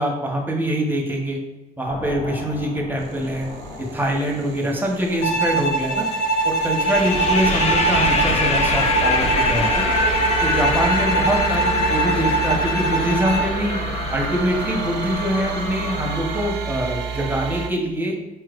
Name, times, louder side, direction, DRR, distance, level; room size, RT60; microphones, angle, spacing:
voice 1, 0.0-1.4 1.8-3.5 3.8-6.1 6.4-9.8 10.4-13.8 14.1-18.1, equal, 10° right, 0 dB, 1.0 m, -24 dB
sound 1, 1.9-4.7 6.7-16.5, left 3 dB, 40° left, 0.6 m, -26 dB
sound 2, 3.0-17.7, right 6 dB, 80° right, 0.5 m, -31 dB
Bowed string instrument, 5.2-13.6, right 2 dB, 85° left, 0.6 m, -23 dB
4.6 x 3.1 x 2.4 m, 1.0 s
supercardioid pair, 60°, 18 cm